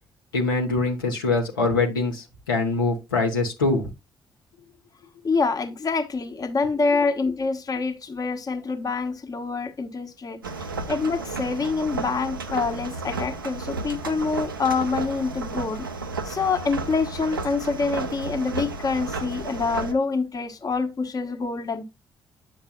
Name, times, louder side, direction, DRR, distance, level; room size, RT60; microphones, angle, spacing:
voice 1, 0.3-3.9, left 3 dB, 80° left, 0.9 m, -23 dB
voice 2, 5.2-15.9 16.2-21.8, left 4 dB, 35° left, 1.1 m, -26 dB
sound 1, 10.4-19.9, right 4 dB, 85° right, 0.5 m, -33 dB
8.9 x 6.5 x 2.3 m
figure-of-eight pair, 40°, 11 cm